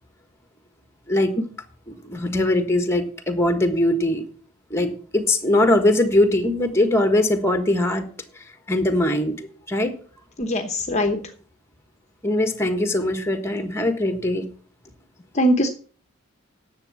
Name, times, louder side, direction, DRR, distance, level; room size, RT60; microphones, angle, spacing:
voice 1, 1.9-4.2 4.7-8.1 8.3-9.9 12.2-14.5, left 1 dB, 10° left, 8 dB, 1.4 m, -21 dB
voice 2, 10.4-11.2 15.4-15.7, equal, 30° left, 6 dB, 0.9 m, -21 dB
10.5 x 7.4 x 7.2 m, 0.43 s
head